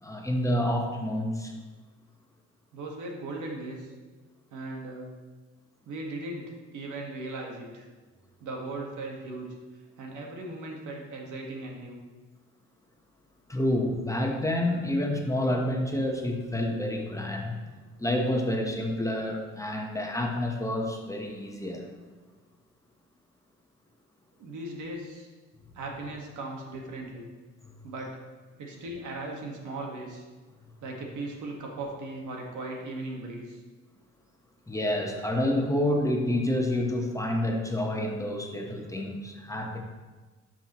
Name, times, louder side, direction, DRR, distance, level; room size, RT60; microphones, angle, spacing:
voice 1, 0.0-1.5 13.5-17.6 18.0-21.8 27.6-27.7 34.7-39.8, left 1 dB, 10° left, 1 dB, 1.2 m, -28 dB
voice 2, 2.7-3.9 4.5-5.2 5.8-7.9 8.4-9.6 10.0-12.0 24.4-25.3 25.7-27.3 27.8-28.2 28.6-30.3 30.8-33.6, right 2 dB, 75° right, 0 dB, 1.7 m, -38 dB
11.5 x 5.9 x 3.1 m, 1.3 s
cardioid pair, 90°, 30 cm